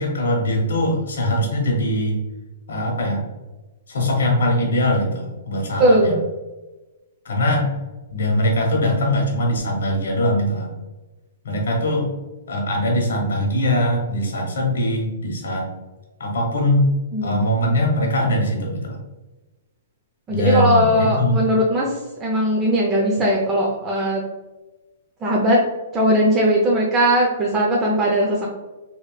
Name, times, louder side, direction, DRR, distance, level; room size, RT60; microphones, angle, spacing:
voice 1, 0.0-2.2 2.7-3.2 3.9-6.1 7.2-7.7 8.1-10.7 11.4-12.1 12.5-15.7 16.2-16.9 17.2-19.0 20.3-21.4, left 1 dB, 75° left, 0 dB, 1.0 m, -21 dB
voice 2, 5.8-6.2 17.1-17.4 20.3-24.2 25.2-25.6 25.9-28.5, equal, 20° right, -3 dB, 0.5 m, -19 dB
2.9 x 2.9 x 2.3 m, 1.1 s
hypercardioid pair, 130°, 0 cm